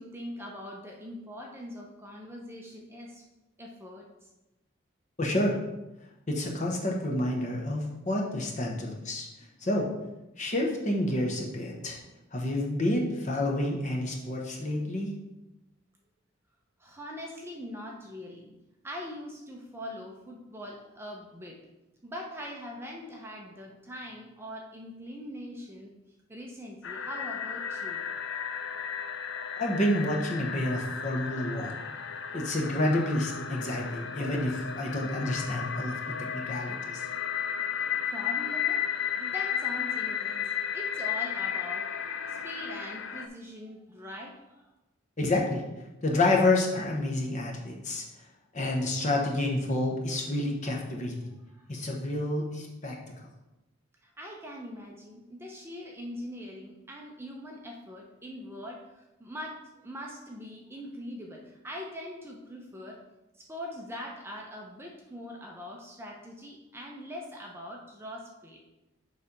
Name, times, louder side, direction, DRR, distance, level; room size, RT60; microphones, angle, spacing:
voice 1, 0.0-3.2 3.6-4.3 16.8-18.5 18.8-21.6 22.0-25.9 26.3-28.0 38.1-41.9 42.3-44.6 51.5-51.7 54.0-63.0 63.4-68.6, equal, 10° right, -1 dB, 0.7 m, -42 dB
voice 2, 5.2-5.6 6.3-9.3 9.6-9.9 10.4-12.0 12.3-15.1 29.6-31.9 32.3-37.0 45.2-45.6 46.0-48.0 48.5-51.3 51.7-53.0, left 1 dB, 35° left, 0 dB, 1.0 m, -29 dB
sound 1, 26.8-43.3, left 8 dB, 65° left, 0.5 m, -34 dB
7.0 x 3.4 x 5.2 m, 0.99 s
head